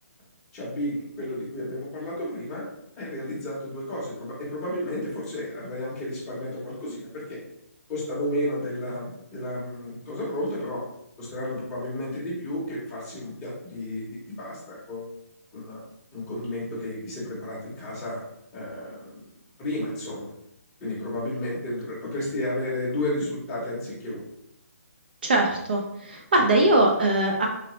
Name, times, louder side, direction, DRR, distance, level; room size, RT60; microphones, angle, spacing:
voice 1, 0.5-2.6 3.0-7.4 7.9-10.8 11.2-15.1 15.5-15.8 16.1-18.2 18.5-19.2 19.6-20.3 20.8-24.2 26.5-26.6, left 1 dB, 10° left, -7 dB, 0.7 m, -32 dB
voice 2, 25.2-27.5, right 1 dB, 35° right, 1 dB, 0.3 m, -21 dB
3.8 x 2.0 x 3.0 m, 0.80 s
hypercardioid pair, 170°, 9 cm